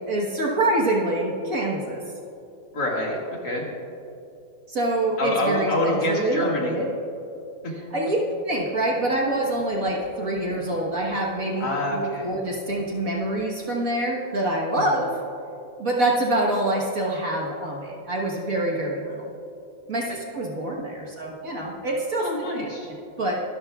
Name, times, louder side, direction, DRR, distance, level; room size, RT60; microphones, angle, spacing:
voice 1, 0.1-2.0 4.7-6.9 7.9-8.2 8.5-15.2 15.8-19.3 19.9-22.3 22.9-23.4, right 1 dB, 45° right, -2 dB, 1.6 m, -26 dB
voice 2, 2.7-3.7 5.2-6.8 7.6-7.7 11.6-12.3 14.7-15.0 22.2-22.9, left 1 dB, 55° left, -2 dB, 2.6 m, -26 dB
24.0 x 13.0 x 2.4 m, 2.7 s
omnidirectional pair, 2.2 m